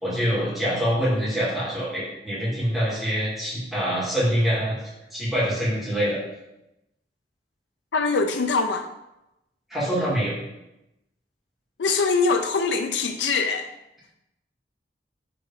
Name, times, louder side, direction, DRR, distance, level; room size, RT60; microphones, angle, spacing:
voice 1, 0.0-4.8 5.1-6.2 9.7-10.4, equal, ahead, -9 dB, 2.3 m, -25 dB
voice 2, 7.9-8.9 11.8-13.7, left 4 dB, 80° left, 6 dB, 0.5 m, -23 dB
5.2 x 3.7 x 4.9 m, 0.90 s
head